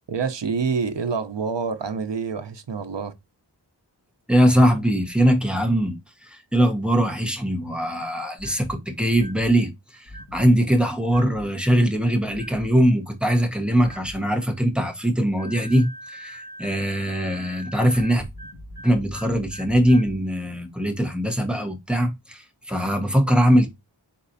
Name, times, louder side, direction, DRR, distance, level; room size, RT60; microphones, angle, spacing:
voice 1, 0.1-3.1, right 5 dB, 80° right, 0.7 m, -27 dB
voice 2, 4.3-18.2 18.8-23.7, equal, ahead, 1.2 m, -21 dB
sound 1, 8.4-8.7 9.1-9.5 10.1-10.4 11.1-11.5 12.3-12.7 13.8-14.2 15.4-20.2, equal, 65° left, 1.7 m, -41 dB
4.3 x 4.1 x 2.6 m
wide cardioid pair, 50°, 42 cm